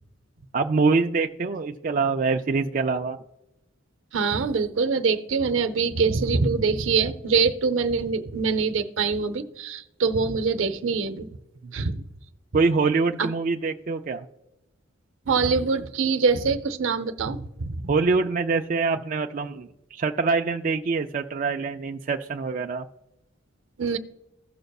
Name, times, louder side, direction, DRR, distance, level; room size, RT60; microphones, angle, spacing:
voice 1, 0.5-3.2 11.6-12.0 12.5-14.3 17.9-22.9, right 4 dB, 40° right, 4 dB, 0.3 m, -25 dB
voice 2, 4.1-11.3 11.7-12.0 13.2-13.3 15.3-17.8 23.8-24.0, right 4 dB, 75° right, 9 dB, 0.7 m, -24 dB
16.5 x 6.5 x 2.3 m, 0.97 s
head